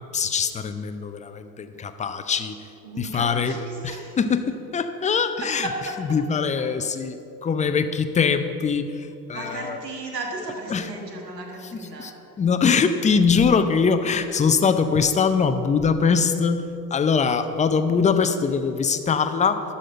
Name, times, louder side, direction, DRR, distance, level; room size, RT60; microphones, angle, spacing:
voice 1, 0.1-2.5 3.0-3.6 3.8-5.7 6.1-9.8 10.7-10.9 12.0-12.1 12.4-19.6, left 5 dB, 15° left, 9 dB, 0.5 m, -22 dB
voice 2, 2.8-4.2 5.4-6.2 6.6-6.7 9.3-12.1, right 2 dB, 85° right, 1 dB, 1.5 m, -34 dB
12.5 x 4.2 x 7.7 m, 2.7 s
figure-of-eight pair, 65°, 48 cm